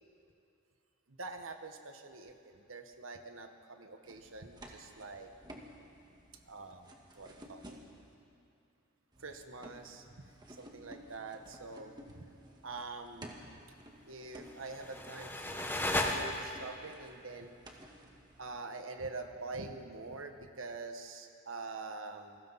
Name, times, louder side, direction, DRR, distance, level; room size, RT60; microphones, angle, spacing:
voice 1, 1.1-5.3 6.5-7.8 9.2-12.2 12.6-13.3 14.1-15.6 16.0-17.5 18.4-22.4, right 3 dB, 75° right, 6 dB, 1.5 m, -45 dB
sound 1, 4.0-8.1 9.1-18.6, equal, 20° right, 1.9 m, -55 dB
sound 2, 14.4-16.8, left 1 dB, 10° left, 1.3 m, -35 dB
28.5 x 21.5 x 4.2 m, 2.5 s
head